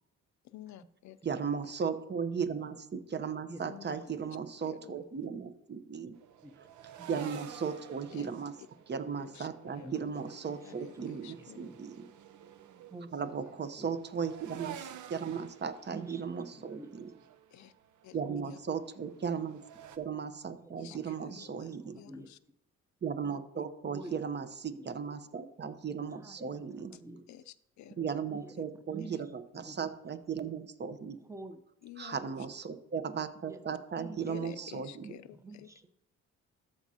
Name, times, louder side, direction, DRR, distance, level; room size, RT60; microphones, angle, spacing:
voice 1, 0.4-1.2 3.6-4.0 4.6-5.0 8.1-8.3 9.2-9.5 9.7-10.1 10.6-11.7 17.5-17.7 18.0-18.2 18.4-18.6 20.8-21.7 21.9-22.4 23.2-23.4 27.3-28.1 29.0-29.1 29.5-29.6 31.8-32.2 34.3-35.7, left 12 dB, 70° left, 14 dB, 0.6 m, -50 dB
voice 2, 1.2-6.1 6.6-6.7 7.1-8.5 8.9-12.0 13.1-17.1 18.1-19.6 20.0-22.0 23.0-26.9 28.0-31.2 32.0-35.1, right 6 dB, 35° right, 10 dB, 0.9 m, -36 dB
sound 1, 6.1-20.0, right 9 dB, 75° right, 0.8 m, -51 dB
voice 3, 7.0-7.7 9.8-10.0 10.6-11.1 11.4-11.8 12.9-13.9 15.2-15.4 15.9-16.2 16.6-17.3 18.3-18.5 19.2-19.3 20.6-21.0 21.2-22.3 23.8-24.1 24.7-24.8 26.1-27.3 28.3-29.2 29.7-29.8 31.3-31.6 33.4-33.6 34.0-34.2 34.6-34.7 35.0-35.1 35.3-35.9, right 2 dB, 10° right, 9 dB, 0.9 m, -49 dB
14.0 x 6.2 x 2.8 m, 0.85 s
cardioid pair, 90°, 30 cm